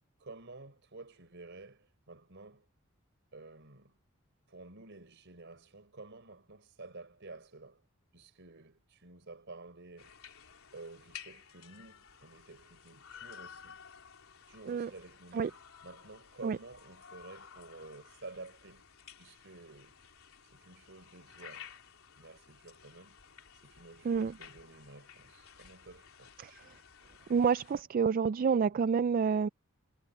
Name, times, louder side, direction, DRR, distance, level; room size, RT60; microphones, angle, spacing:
voice 1, 0.2-2.7 3.3-3.9 4.5-7.8 8.1-10.2 10.7-13.8 14.5-18.8 19.2-20.0 20.5-21.7 22.2-23.2 23.6-26.3, right 3 dB, 60° right, 4.4 m, -51 dB
sound 1, 10.0-27.8, left 7 dB, 80° left, 3.8 m, -54 dB
voice 2, 27.3-29.5, right 6 dB, 40° right, 0.3 m, -28 dB
head